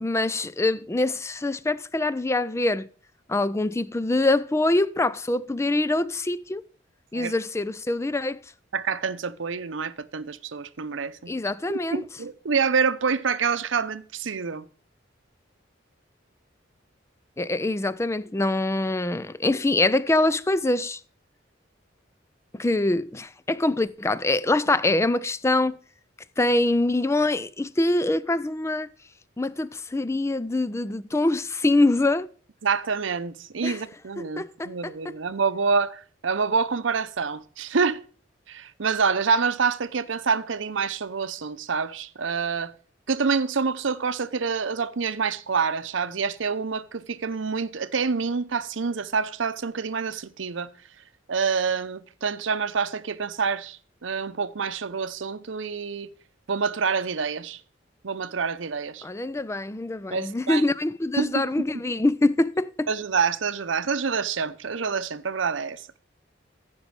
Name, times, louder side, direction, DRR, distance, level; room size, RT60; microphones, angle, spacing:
voice 1, 0.0-2.9 3.3-6.6 7.1-8.4 11.3-12.0 17.4-21.0 22.5-25.8 26.4-28.9 29.4-32.3 33.6-33.8 34.2-35.1 59.0-62.9, left 2 dB, 15° left, 0.4 m, -24 dB
voice 2, 8.7-11.3 11.9-14.7 32.6-38.0 38.5-42.7 43.1-50.7 51.3-56.1 56.5-57.6 58.0-59.0 60.1-60.6 61.2-61.7 62.9-66.0, right 5 dB, 75° right, 0.7 m, -27 dB
14.5 x 5.3 x 4.7 m
head